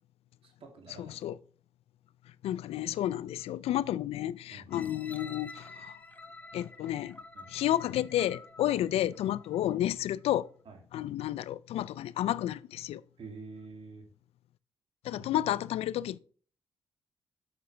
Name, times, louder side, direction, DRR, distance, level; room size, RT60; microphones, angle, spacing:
voice 1, 0.4-1.2 4.5-4.7 7.3-7.5 8.7-8.8 9.4-9.5 10.6-10.8 13.2-14.1 15.0-15.4, right 4 dB, 65° right, 2.7 m, -48 dB
voice 2, 2.4-5.9 6.5-7.2 7.5-10.5 10.9-13.0 15.1-16.2, left 12 dB, 80° left, 0.4 m, -31 dB
sound 1, 4.7-9.6 10.2-10.3, left 3 dB, 15° left, 1.4 m, -50 dB
8.0 x 7.6 x 3.3 m
supercardioid pair, 60°, 10 cm